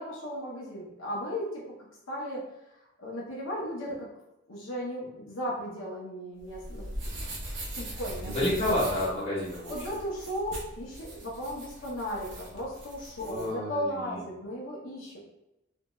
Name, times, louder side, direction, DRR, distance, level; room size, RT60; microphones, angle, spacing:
voice 1, 0.0-1.6 2.1-2.4 3.0-4.1 4.5-7.3 7.7-8.3 9.7-15.3, equal, 80° left, -4 dB, 0.7 m, -36 dB
sound 1, 6.4-13.5, right 1 dB, 60° right, 0.8 m, -40 dB
voice 2, 8.2-9.9 13.2-14.2, left 1 dB, 30° left, -9 dB, 1.1 m, -30 dB
2.6 x 2.2 x 2.9 m, 0.92 s
head